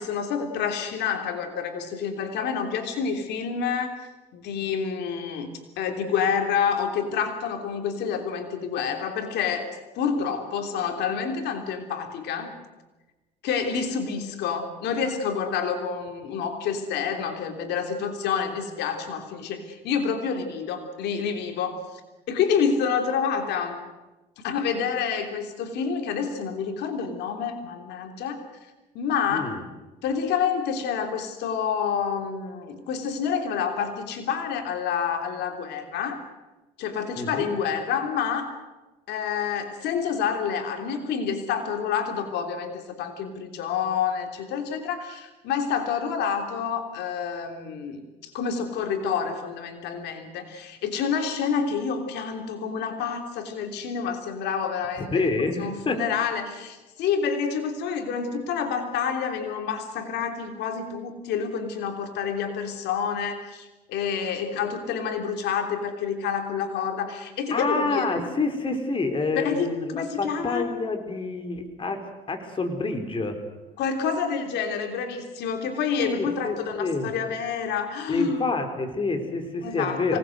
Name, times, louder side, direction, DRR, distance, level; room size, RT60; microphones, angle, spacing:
voice 1, 0.0-3.9 4.3-9.7 10.0-12.6 13.4-22.0 22.3-23.8 24.4-28.4 28.9-29.5 30.0-36.2 36.8-38.5 39.1-55.3 55.6-68.0 69.4-70.7 73.8-78.5 79.6-80.2, left 6 dB, 80° left, 5 dB, 3.1 m, -28 dB
voice 2, 29.3-29.6 37.2-37.5 55.0-56.0 67.5-73.4 76.0-77.1 78.1-80.2, left 3 dB, 30° left, 6 dB, 4.2 m, -28 dB
26.0 x 19.0 x 8.0 m, 1.1 s
cardioid pair, 110°, 17 cm